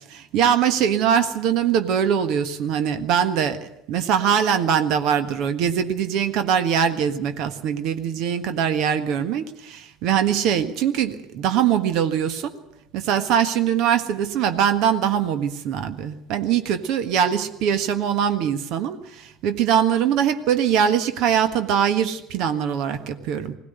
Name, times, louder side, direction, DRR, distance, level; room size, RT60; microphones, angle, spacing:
voice 1, 0.1-12.6 12.9-23.5, right 8 dB, 50° right, 10 dB, 1.5 m, -22 dB
21.0 x 18.0 x 8.1 m, 0.84 s
figure-of-eight pair, 65°, 0 cm